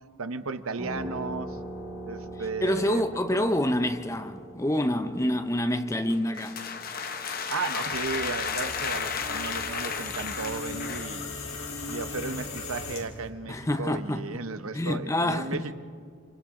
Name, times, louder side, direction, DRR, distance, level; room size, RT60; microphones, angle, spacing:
voice 1, 0.2-1.6 2.1-3.5 7.5-11.2 11.9-15.7, right 4 dB, 90° right, 1.0 m, -35 dB
sound 1, 0.8-10.0, right 1 dB, 15° right, 7.9 m, -43 dB
voice 2, 2.6-6.6 13.5-14.4 14.7-15.7, left 1 dB, 15° left, 0.7 m, -27 dB
sound 2, 6.1-11.2, left 6 dB, 45° left, 1.0 m, -33 dB
sound 3, 7.9-13.3, left 3 dB, 80° left, 3.6 m, -38 dB
27.5 x 27.0 x 3.8 m
head